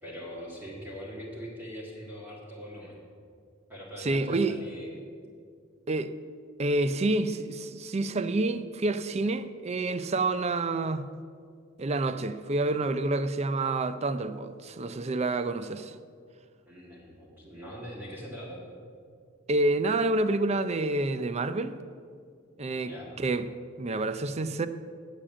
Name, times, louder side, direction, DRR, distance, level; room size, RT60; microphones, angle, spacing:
voice 1, 0.0-3.0 3.7-5.0 16.7-18.6 22.6-23.1, equal, 10° right, 1.7 m, -42 dB
voice 2, 4.0-4.5 5.9-6.1 6.6-11.0 11.8-16.0 19.5-21.8 22.6-23.5 23.8-24.7, right 2 dB, 30° right, 0.4 m, -28 dB
8.6 x 7.5 x 8.6 m
head